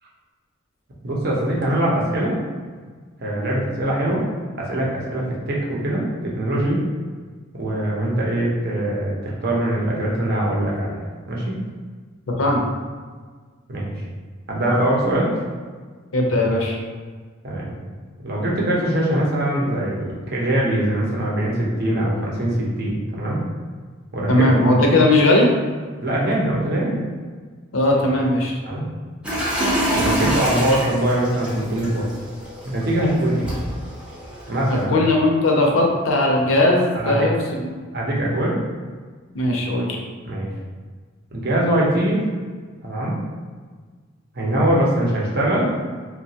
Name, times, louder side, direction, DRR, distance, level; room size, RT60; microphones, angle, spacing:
voice 1, 1.0-2.4 3.2-4.2 4.6-6.8 7.6-11.0 11.3-11.6 13.7-13.9 14.5-15.3 17.4-17.8 18.2-23.4 24.1-24.5 26.0-27.0 28.7-28.8 29.9-32.1 32.6-33.6 34.5-34.9 36.9-37.3 37.9-38.6 40.2-40.5 41.3-42.2 42.8-43.1 44.4-45.7, right 1 dB, 50° right, -4 dB, 0.7 m, -22 dB
voice 2, 12.3-12.6 16.1-16.8 24.3-25.5 27.7-28.6 34.9-37.7 39.3-40.0, left 1 dB, 75° left, 0 dB, 0.5 m, -18 dB
sound 1, 29.2-34.8, equal, 5° right, 0.6 m, -26 dB
2.9 x 2.2 x 2.7 m, 1.5 s
head